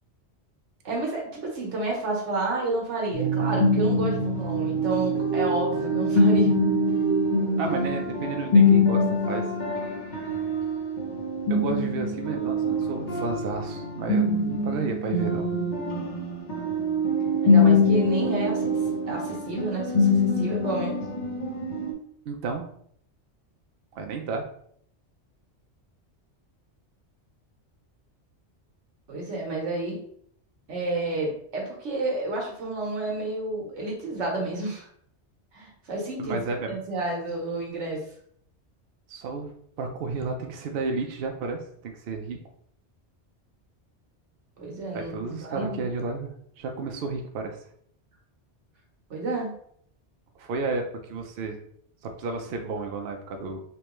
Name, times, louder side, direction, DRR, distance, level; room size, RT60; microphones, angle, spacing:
voice 1, 0.8-6.5 17.4-18.8 19.1-21.0 29.1-30.0 30.7-34.9 35.5-36.4 36.6-38.0 44.6-45.9 49.1-49.5, right 2 dB, 85° right, 0 dB, 1.4 m, -30 dB
sound 1, 3.1-21.9, left 2 dB, 45° left, 0.9 m, -24 dB
voice 2, 7.6-9.4 11.5-15.4 22.3-22.6 23.9-24.5 36.2-36.8 39.1-42.4 44.9-47.6 50.4-51.6 52.0-53.6, right 4 dB, 65° right, 3 dB, 0.7 m, -32 dB
3.4 x 3.0 x 3.0 m, 0.66 s
omnidirectional pair, 1.2 m